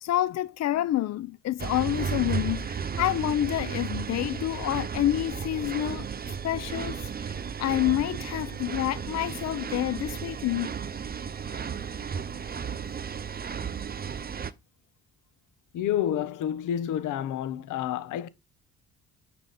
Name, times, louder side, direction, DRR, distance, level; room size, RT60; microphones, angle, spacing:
voice 1, 0.0-10.7, left 13 dB, 60° left, 0.6 m, -28 dB
sound 1, 1.6-14.5, right 7 dB, 30° right, 0.8 m, -34 dB
voice 2, 15.7-18.3, left 10 dB, 85° left, 1.1 m, -29 dB
10.0 x 5.0 x 4.2 m
cardioid pair, 90°, 30 cm